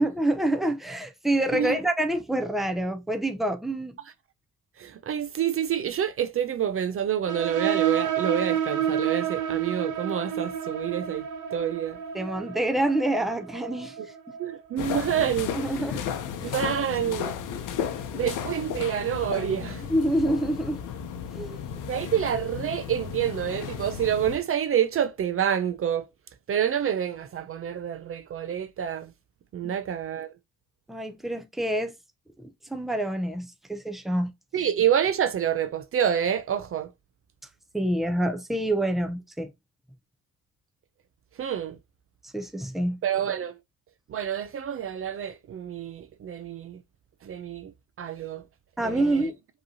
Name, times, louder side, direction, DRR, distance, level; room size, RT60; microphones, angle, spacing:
voice 1, 0.0-4.0 12.1-13.9 15.5-16.1 16.4-16.5 19.9-20.8 21.3-21.6 29.6-29.7 30.9-31.9 32.7-34.3 37.7-39.5 42.3-43.0 48.8-49.4, right 1 dB, ahead, 0.7 m, -27 dB
voice 2, 4.8-12.0 14.0-14.1 14.4-15.8 16.4-17.3 18.1-19.9 21.9-26.1 26.5-29.1 29.5-30.3 34.5-36.9 41.4-41.8 43.0-43.6 44.1-46.8 47.2-47.7 48.0-48.4 48.8-49.3, right 9 dB, 45° right, 0.5 m, -28 dB
sound 1, 7.3-14.6, right 9 dB, 85° right, 0.8 m, -30 dB
sound 2, 14.8-24.4, left 8 dB, 90° left, 0.7 m, -34 dB
5.1 x 3.0 x 2.7 m
cardioid pair, 90°, 30 cm